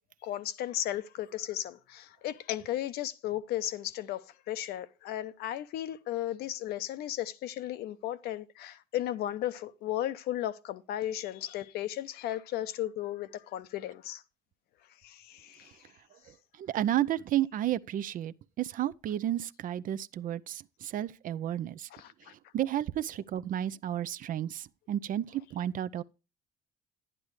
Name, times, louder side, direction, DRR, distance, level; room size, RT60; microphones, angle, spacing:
voice 1, 0.2-14.2 15.0-15.8 21.9-22.3, left 12 dB, 65° left, 0.7 m, -35 dB
voice 2, 16.6-21.9 22.5-26.0, right 12 dB, 50° right, 0.5 m, -32 dB
10.5 x 9.9 x 3.2 m
hypercardioid pair, 65°, 17 cm